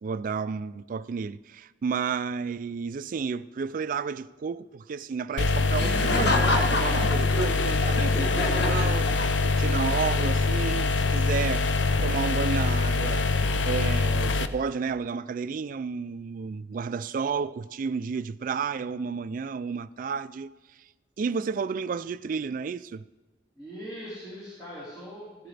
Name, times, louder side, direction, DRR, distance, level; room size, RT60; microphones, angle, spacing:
voice 1, 0.0-9.1 9.4-13.3 13.7-20.5 21.2-23.0, right 5 dB, 50° right, 0.3 m, -31 dB
sound 1, 5.4-14.5, left 3 dB, 85° left, 0.6 m, -24 dB
Laughter, 5.7-9.7, left 2 dB, 65° left, 1.2 m, -29 dB
voice 2, 23.5-25.5, equal, 25° left, 4.0 m, -41 dB
15.0 x 11.5 x 3.4 m
head